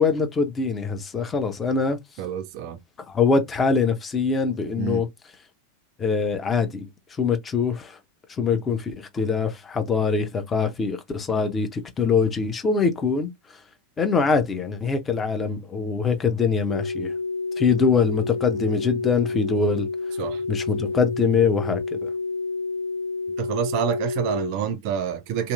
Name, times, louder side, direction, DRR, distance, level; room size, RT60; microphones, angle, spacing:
voice 1, 0.0-2.0 3.1-5.1 6.0-6.9 7.2-8.0 8.3-13.3 14.0-17.1 17.6-19.9 20.5-22.1, left 5 dB, 20° left, 0.7 m, -23 dB
voice 2, 2.2-2.8 4.7-5.0 20.2-20.4 23.4-25.5, right 9 dB, 45° right, 0.5 m, -27 dB
sound 1, 16.7-24.5, left 3 dB, 70° left, 0.3 m, -29 dB
2.8 x 2.5 x 2.4 m
figure-of-eight pair, 90°, 0 cm